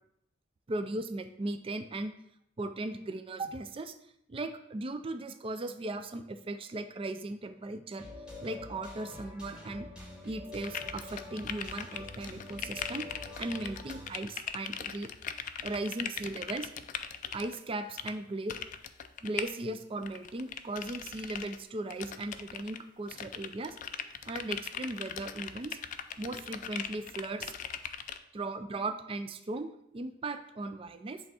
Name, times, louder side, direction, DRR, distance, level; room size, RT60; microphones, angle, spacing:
voice 1, 0.7-2.1 2.6-3.9 4.3-8.1 8.4-9.9 10.2-13.1 13.4-15.1 15.6-16.7 17.3-18.6 19.2-23.8 24.2-25.8 26.2-27.5 28.3-31.2, right 2 dB, 30° right, 9 dB, 0.4 m, -37 dB
sound 1, 7.9-14.1, left 2 dB, 5° right, 1.3 m, -46 dB
sound 2, 10.5-17.6 18.0-18.1 18.5-19.5 20.0-21.6 21.9-22.8 23.1-28.2, left 8 dB, 45° left, 0.3 m, -40 dB
7.7 x 3.5 x 4.2 m, 0.74 s
head